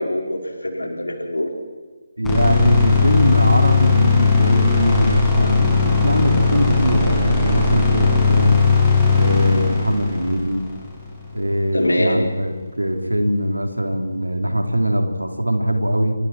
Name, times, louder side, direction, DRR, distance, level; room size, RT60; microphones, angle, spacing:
voice 1, 0.0-1.5 11.7-12.3, left 1 dB, 80° left, 1 dB, 5.7 m, -23 dB
sound 1, 2.2-11.4, left 4 dB, 5° left, 7.2 m, -17 dB
voice 2, 2.2-8.6 9.1-10.6 11.3-16.2, right 1 dB, 85° right, 4 dB, 4.1 m, -21 dB
27.5 x 26.0 x 4.7 m, 1.3 s
figure-of-eight pair, 150°, 0 cm